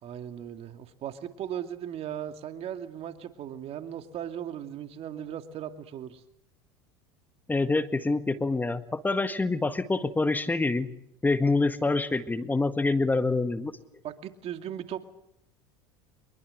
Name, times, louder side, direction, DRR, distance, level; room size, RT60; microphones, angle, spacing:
voice 1, 0.0-6.2 14.0-15.1, right 10 dB, 45° right, 7 dB, 2.5 m, -37 dB
voice 2, 7.5-10.9 11.2-13.7, left 3 dB, 15° left, 10 dB, 1.7 m, -26 dB
24.5 x 22.5 x 8.0 m, 0.76 s
hypercardioid pair, 85°, 14 cm